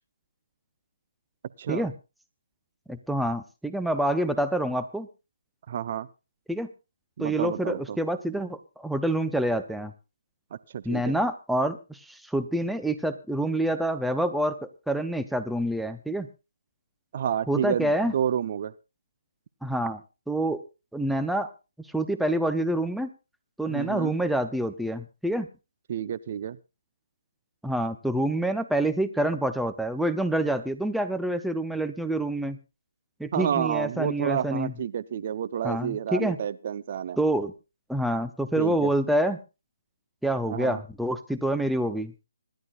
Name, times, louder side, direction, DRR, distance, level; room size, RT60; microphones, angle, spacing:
voice 1, 2.9-5.1 6.5-6.7 7.2-9.9 10.8-16.3 17.5-18.1 19.6-20.0 20.3-20.6 20.9-21.5 21.9-23.1 23.6-25.5 27.6-32.6 33.2-34.7 35.6-36.4 37.2-37.5 37.9-39.4 40.2-42.1, right 1 dB, ahead, 9 dB, 0.6 m, -27 dB
voice 2, 5.7-6.1 7.2-8.0 10.5-11.2 17.1-18.7 23.7-24.1 25.9-26.6 33.3-37.2 38.6-38.9 40.5-40.8, right 9 dB, 40° right, 15 dB, 0.6 m, -30 dB
25.5 x 11.5 x 2.4 m, 0.28 s
hypercardioid pair, 155°, 0 cm